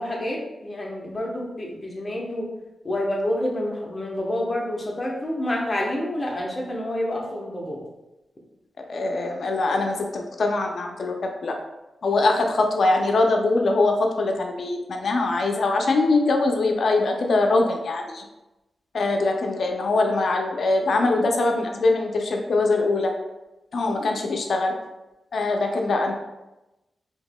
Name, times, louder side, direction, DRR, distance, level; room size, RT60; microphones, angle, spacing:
voice 1, 0.0-2.5 2.8-7.8, left 1 dB, 35° left, -2 dB, 1.0 m, -28 dB
voice 2, 8.8-11.5 12.0-18.2 18.9-23.1 23.7-24.7 25.3-26.1, left 2 dB, 70° left, 2 dB, 0.5 m, -22 dB
4.5 x 2.9 x 2.2 m, 0.99 s
cardioid pair, 60°, 0 cm